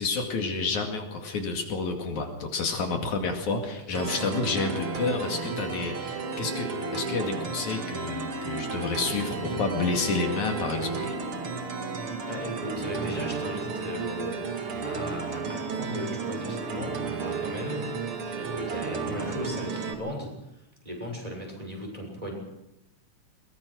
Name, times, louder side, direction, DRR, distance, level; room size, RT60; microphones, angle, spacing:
voice 1, 0.0-11.1, left 4 dB, 70° left, 3 dB, 3.7 m, -30 dB
voice 2, 3.9-4.3 12.3-18.0 18.2-22.3, left 1 dB, 10° right, -1 dB, 6.6 m, -37 dB
sound 1, 3.9-19.9, right 4 dB, 50° right, 2.7 m, -33 dB
22.5 x 21.0 x 6.4 m, 0.86 s
omnidirectional pair, 3.5 m